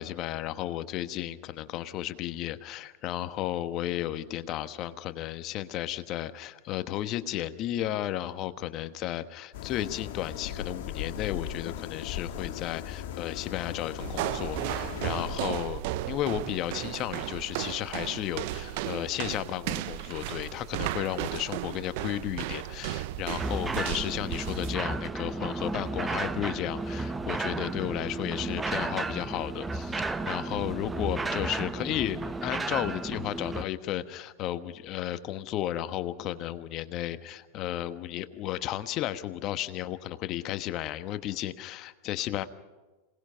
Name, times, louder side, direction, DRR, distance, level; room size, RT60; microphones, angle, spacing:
voice 1, 0.0-42.4, left 13 dB, 45° left, 11 dB, 1.2 m, -33 dB
sound 1, 9.5-15.4, left 9 dB, 65° left, 1.7 m, -38 dB
sound 2, 14.0-24.8, right 15 dB, 60° right, 0.7 m, -35 dB
sound 3, 23.4-33.6, right 3 dB, 15° right, 0.9 m, -33 dB
26.5 x 19.0 x 5.7 m, 1.2 s
hypercardioid pair, 95°, 0 cm